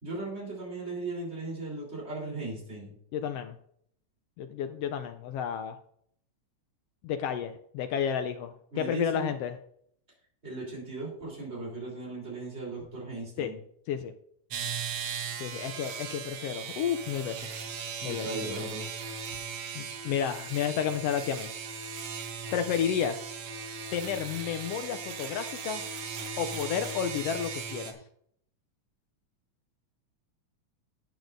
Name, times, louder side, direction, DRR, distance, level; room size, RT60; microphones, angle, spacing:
voice 1, 0.0-3.0 8.7-9.3 10.4-13.6 18.0-18.9, right 2 dB, 20° right, -3 dB, 3.7 m, -37 dB
voice 2, 3.1-3.6 4.4-5.8 7.0-9.6 13.4-13.5 13.9-14.1 15.4-17.5 18.0-18.6 19.7-21.5 22.5-23.2 23.9-25.8 26.4-28.0, left 8 dB, 90° left, 8 dB, 1.3 m, -31 dB
sound 1, 14.5-27.9, right 6 dB, 65° right, 2.1 m, -38 dB
13.0 x 9.1 x 2.6 m, 0.68 s
omnidirectional pair, 3.4 m